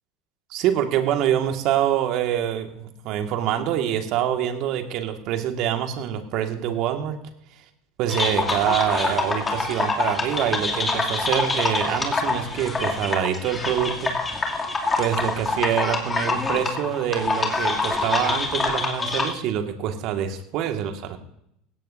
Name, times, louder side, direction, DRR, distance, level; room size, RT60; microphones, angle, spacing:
voice 1, 0.5-7.2 8.0-14.1 15.0-21.2, right 10 dB, 55° right, 5 dB, 1.9 m, -25 dB
sound 1, 8.1-19.3, left 3 dB, 20° left, 2.8 m, -25 dB
18.5 x 16.5 x 2.7 m, 0.78 s
hypercardioid pair, 80°, 0 cm